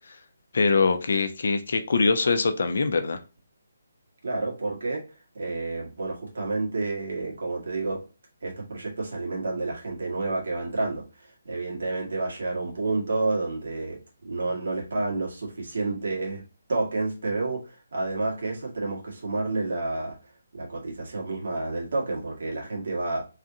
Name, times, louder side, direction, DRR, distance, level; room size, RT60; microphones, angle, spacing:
voice 1, 0.5-3.2, left 4 dB, 55° left, 8 dB, 0.6 m, -23 dB
voice 2, 4.2-5.1 5.4-8.1 8.4-16.4 16.7-20.2 20.5-23.2, right 3 dB, 60° right, -2 dB, 1.6 m, -30 dB
3.6 x 3.3 x 2.7 m, 0.32 s
figure-of-eight pair, 145°, 0 cm